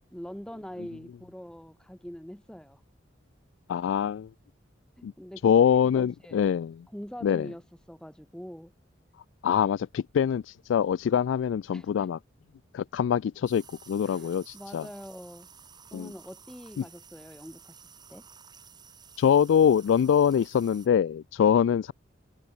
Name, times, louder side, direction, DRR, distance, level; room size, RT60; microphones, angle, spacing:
voice 1, 0.1-2.8 5.0-6.4 6.9-7.6 7.9-8.7 11.7-12.1 14.0-15.5 15.9-18.3, equal, 5° left, 0.9 m, -44 dB
voice 2, 3.7-4.3 5.0-5.1 5.4-6.9 7.2-7.5 9.4-12.2 12.7-14.9 15.9-16.1 16.8-16.9 19.2-21.9, left 8 dB, 85° left, 0.3 m, -24 dB
sound 1, 13.4-20.9, right 7 dB, 25° right, 1.8 m, -53 dB
head